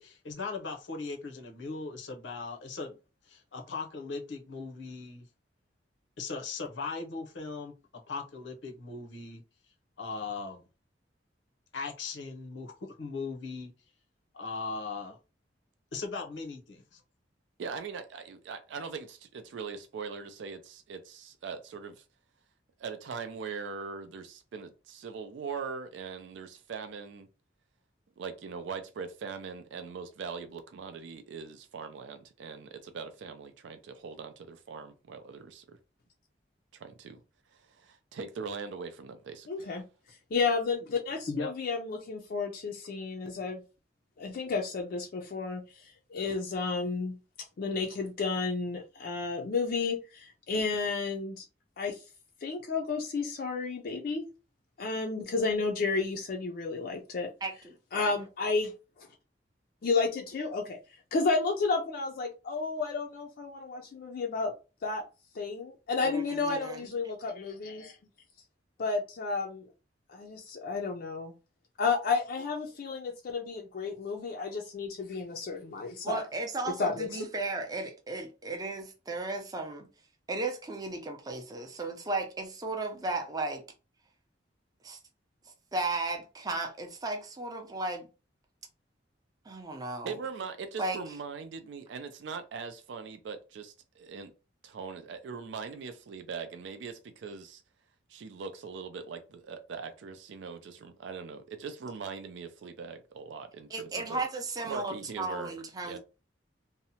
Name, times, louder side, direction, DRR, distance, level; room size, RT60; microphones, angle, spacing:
voice 1, 0.0-3.0 3.3-5.3 6.2-7.7 8.1-9.4 10.0-10.7 11.7-13.7 14.3-15.2 15.9-17.0 41.3-41.5, left 4 dB, 85° left, 0.6 m, -38 dB
voice 2, 17.6-22.0 22.8-27.3 28.2-35.8 36.7-37.2 37.5-39.7 90.0-94.3 94.6-97.6 98.1-104.2 104.6-105.5 105.8-106.0, right 5 dB, 80° right, 0.4 m, -41 dB
voice 3, 39.5-39.8 40.3-43.6 44.2-51.4 51.8-52.0 52.4-54.3 54.8-57.3 57.9-58.7 59.0-59.1 59.8-60.8 61.1-64.5 64.8-65.0 65.3-68.0 68.8-69.7 70.1-71.3 71.8-76.2 76.8-77.2, left 4 dB, 55° left, 0.4 m, -32 dB
voice 4, 57.4-58.1 66.0-66.8 76.0-79.9 80.3-83.6 84.8-85.0 85.7-88.1 89.5-90.2 90.8-91.0 103.7-106.0, right 2 dB, 20° right, 0.5 m, -35 dB
2.7 x 2.1 x 2.7 m
head